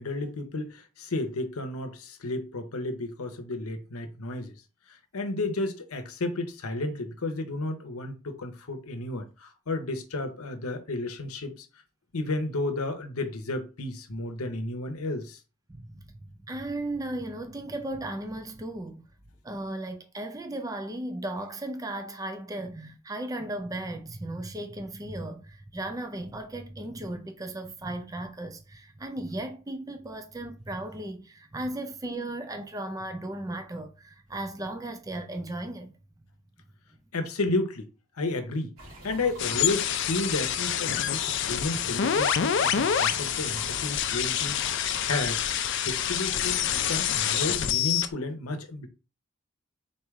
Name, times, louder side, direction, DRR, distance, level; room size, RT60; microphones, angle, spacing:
voice 1, 0.0-4.5 4.9-11.7 12.1-15.4 37.1-37.9 38.2-38.7 39.0-45.4 45.8-48.9, left 2 dB, 85° left, 0.8 m, -32 dB
voice 2, 15.7-16.1 16.5-19.1 19.4-36.0 42.7-42.8, right 1 dB, 15° right, 0.4 m, -36 dB
sound 1, 38.8-45.6, right 1 dB, 85° right, 2.2 m, -46 dB
sound 2, 39.4-48.1, left 9 dB, 55° left, 0.4 m, -27 dB
4.2 x 3.2 x 3.5 m
head